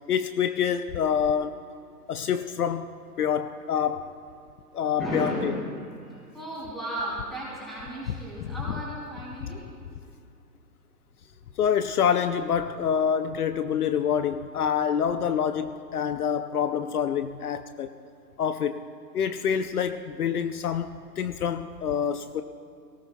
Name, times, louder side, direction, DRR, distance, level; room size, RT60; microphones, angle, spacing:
voice 1, 0.1-1.6 2.1-2.9 3.2-4.1 4.7-5.5 11.6-17.9 18.4-18.8 19.1-22.4, left 8 dB, 65° left, 10 dB, 0.6 m, -26 dB
voice 2, 4.9-9.6, equal, ahead, -8 dB, 3.3 m, -34 dB
22.5 x 18.5 x 2.3 m, 2.4 s
hypercardioid pair, 165°, 49 cm